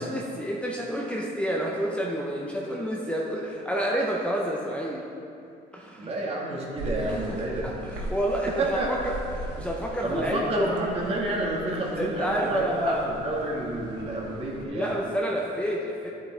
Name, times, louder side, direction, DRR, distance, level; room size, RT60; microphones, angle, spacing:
voice 1, 0.0-5.0 5.7-6.1 7.1-7.2 7.6-8.8 9.0-10.7 12.0-13.1 14.7-16.1, equal, 5° left, -3 dB, 0.8 m, -29 dB
voice 2, 6.0-7.6 8.6-8.9 10.0-15.0, right 1 dB, 35° right, -3 dB, 1.9 m, -29 dB
sound 1, 6.8-14.6, right 2 dB, 85° right, 1.2 m, -39 dB
10.5 x 8.1 x 3.5 m, 2.6 s
cardioid pair, 110°, 17 cm